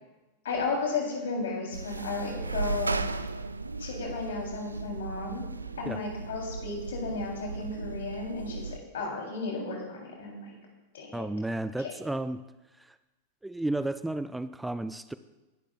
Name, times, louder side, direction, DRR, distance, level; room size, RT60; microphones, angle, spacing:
voice 1, 0.4-3.0 3.8-5.4 5.8-10.5 10.9-11.3 11.8-11.9, left 3 dB, 60° left, 0 dB, 3.2 m, -34 dB
sound 1, 1.7-8.8, right 3 dB, 80° right, 0.4 m, -36 dB
voice 2, 11.1-12.4 12.8-13.0 13.4-15.1, right 2 dB, 5° right, 13 dB, 0.4 m, -33 dB
20.0 x 11.5 x 2.4 m, 1.1 s
figure-of-eight pair, 90°, 0 cm